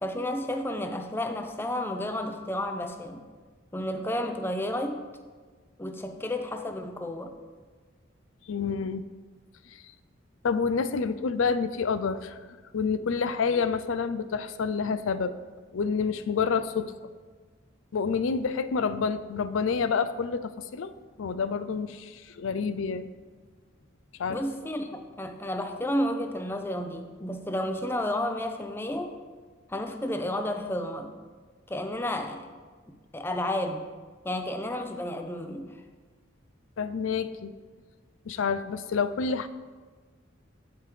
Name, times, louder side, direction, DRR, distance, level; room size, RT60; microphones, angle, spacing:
voice 1, 0.0-3.2 3.7-5.0 5.8-7.4 24.3-29.1 29.7-31.1 31.7-32.6 33.1-33.8 34.2-35.7, left 1 dB, 10° left, 6 dB, 0.5 m, -31 dB
voice 2, 8.5-9.0 9.7-9.8 10.4-12.4 12.7-15.4 15.7-16.9 17.9-20.9 21.2-23.1 24.2-24.4 36.8-37.5 38.3-39.5, left 5 dB, 85° left, 12 dB, 0.4 m, -28 dB
14.5 x 4.9 x 3.2 m, 1.4 s
head